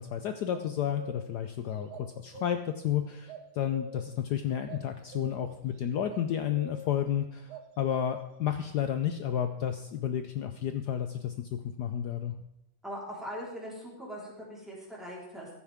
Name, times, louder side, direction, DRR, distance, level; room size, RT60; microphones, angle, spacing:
voice 1, 0.0-12.3, left 9 dB, 70° left, 8 dB, 1.1 m, -31 dB
sound 1, 0.5-1.4 1.9-2.8 3.3-4.2 4.7-5.7 6.1-6.3 6.6-7.0 7.5-8.4, right 1 dB, 90° right, 1.9 m, -44 dB
voice 2, 12.8-15.5, equal, ahead, -6 dB, 3.8 m, -41 dB
15.5 x 9.5 x 3.5 m, 0.88 s
omnidirectional pair, 2.2 m